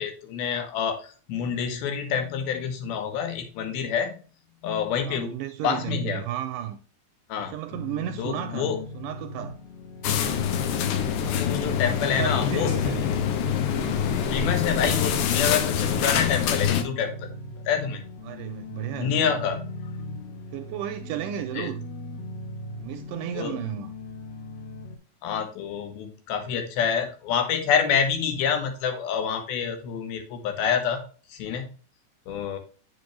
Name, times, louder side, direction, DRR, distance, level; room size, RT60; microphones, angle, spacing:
voice 1, 0.0-4.2 4.6-5.3 5.6-6.2 7.3-7.5 8.2-8.8 11.3-12.8 14.3-17.3 17.7-18.0 19.0-20.2 21.6-21.7 23.4-23.5 25.2-31.7 32.3-32.6, left 7 dB, 90° left, 3.2 m, -27 dB
voice 2, 5.0-6.8 7.4-9.6 11.8-13.1 13.7-14.0 18.2-19.1 20.5-21.8 22.8-23.9, right 12 dB, 80° right, 1.9 m, -34 dB
sound 1, 7.7-25.0, left 3 dB, 55° left, 2.3 m, -39 dB
sound 2, 10.0-16.8, left 8 dB, 75° left, 2.2 m, -25 dB
8.2 x 6.0 x 3.2 m
omnidirectional pair, 4.2 m